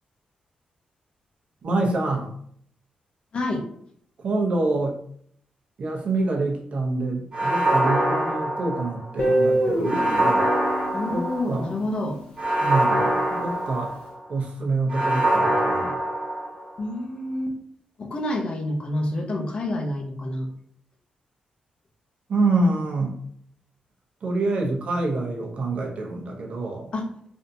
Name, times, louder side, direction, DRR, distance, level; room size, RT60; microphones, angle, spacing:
voice 1, 1.6-2.3 4.2-5.0 5.8-10.5 11.1-11.7 12.6-14.0 14.3-16.0 22.3-23.2 24.2-26.9, right 2 dB, 50° right, -1 dB, 0.7 m, -26 dB
voice 2, 3.3-3.7 10.9-12.2 16.8-17.6 18.0-20.5 26.9-27.0, left 1 dB, 40° left, 1 dB, 0.7 m, -28 dB
sound 1, 7.3-9.2 9.8-11.7 12.4-14.2 14.9-16.8, right 1 dB, 35° right, 1.3 m, -24 dB
Guitar, 9.2-12.1, right 1 dB, 60° left, 1.3 m, -25 dB
3.5 x 2.6 x 2.7 m, 0.64 s
wide cardioid pair, 145°, 3 cm